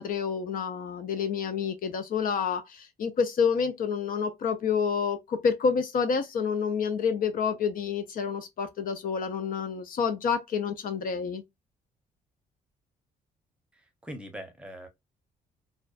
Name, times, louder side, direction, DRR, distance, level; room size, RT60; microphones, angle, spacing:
voice 1, 0.0-11.4, left 6 dB, 60° left, 0.4 m, -28 dB
voice 2, 13.7-14.9, equal, 5° right, 0.8 m, -42 dB
2.4 x 2.2 x 2.4 m
cardioid pair, 90°, 16 cm